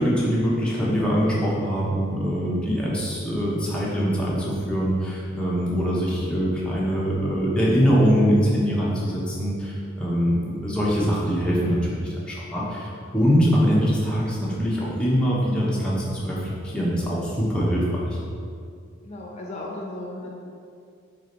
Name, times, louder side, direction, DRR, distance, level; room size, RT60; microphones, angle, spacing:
voice 1, 0.0-18.2, equal, 5° left, -6 dB, 1.0 m, -23 dB
voice 2, 19.0-20.3, left 1 dB, 30° left, -2 dB, 0.9 m, -36 dB
4.9 x 4.1 x 5.3 m, 2.3 s
head